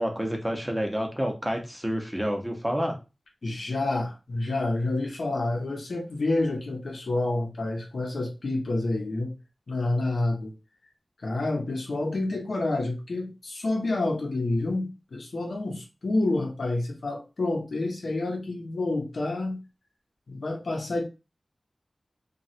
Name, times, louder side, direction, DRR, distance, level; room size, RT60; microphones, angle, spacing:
voice 1, 0.0-2.9, equal, 5° right, 2 dB, 0.8 m, -29 dB
voice 2, 3.4-9.3 9.7-10.5 11.2-19.7 20.3-21.0, left 2 dB, 90° left, 1 dB, 0.7 m, -28 dB
3.0 x 2.3 x 2.7 m, 0.28 s
wide cardioid pair, 75°, 0 cm